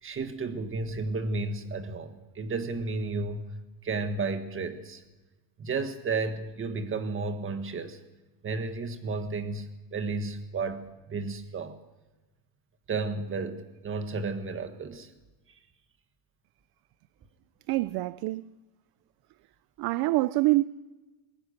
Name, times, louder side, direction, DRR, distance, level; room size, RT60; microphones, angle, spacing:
voice 1, 0.0-3.4 3.8-5.0 5.6-8.0 8.4-11.8 12.9-15.1, right 3 dB, 25° right, 1.7 m, -32 dB
voice 2, 17.7-18.5 19.8-20.7, right 19 dB, 55° right, 0.6 m, -25 dB
21.5 x 19.0 x 6.6 m
cardioid pair, 145°, 47 cm